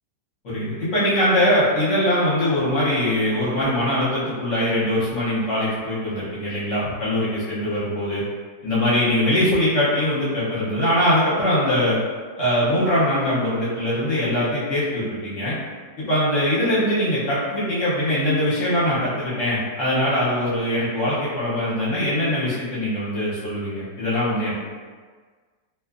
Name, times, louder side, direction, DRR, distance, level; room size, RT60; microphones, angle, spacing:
voice 1, 0.4-8.2 8.6-12.0 12.4-15.6 16.0-24.5, left 1 dB, 55° left, -9 dB, 1.0 m, -22 dB
2.6 x 2.4 x 2.4 m, 1.5 s
omnidirectional pair, 1.8 m